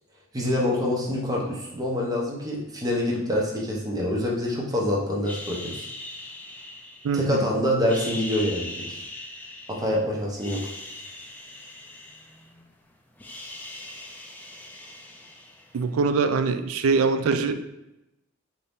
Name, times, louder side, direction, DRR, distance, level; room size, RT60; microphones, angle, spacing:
voice 1, 0.3-5.9 7.1-8.7 9.7-10.6, left 1 dB, 20° right, -2 dB, 0.7 m, -26 dB
sound 1, 5.2-7.4 7.8-10.0 10.3-12.7 13.0-15.9, left 2 dB, 10° left, 0.3 m, -40 dB
voice 2, 7.0-7.5 15.7-17.5, right 4 dB, 90° right, 9 dB, 0.4 m, -23 dB
4.1 x 2.7 x 3.5 m, 0.92 s
head